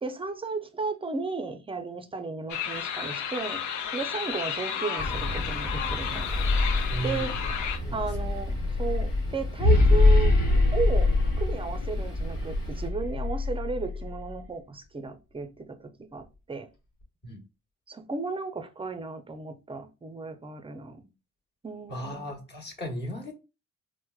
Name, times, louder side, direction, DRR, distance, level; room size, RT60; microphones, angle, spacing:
voice 1, 0.0-3.6 3.9-6.3 7.0-7.3 7.9-10.3 10.7-16.7 17.9-21.1 21.6-22.4, right 4 dB, 20° right, 0.4 m, -34 dB
sound 1, 2.5-7.8, left 8 dB, 70° left, 0.6 m, -32 dB
sound 2, 5.0-12.9, left 1 dB, 15° left, 1.1 m, -36 dB
sound 3, 6.2-14.3, left 2 dB, 90° left, 1.1 m, -24 dB
voice 2, 6.9-7.5 7.8-8.1 17.2-17.4 21.9-23.3, right 1 dB, 35° left, 1.0 m, -35 dB
4.4 x 2.1 x 2.3 m
cardioid pair, 90°, 30 cm